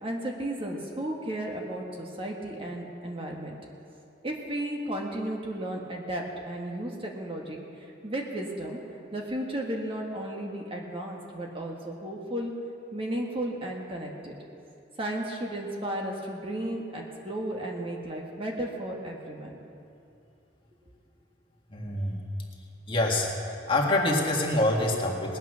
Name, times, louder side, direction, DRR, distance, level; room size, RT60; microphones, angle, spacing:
voice 1, 0.0-3.5 4.2-7.6 8.0-8.8 9.1-12.5 12.9-14.3 15.0-19.6, right 1 dB, 30° right, 0 dB, 1.5 m, -34 dB
voice 2, 21.7-22.2 22.9-23.3 23.6-25.4, left 1 dB, 30° left, -2 dB, 1.9 m, -25 dB
19.5 x 9.0 x 6.3 m, 2.7 s
head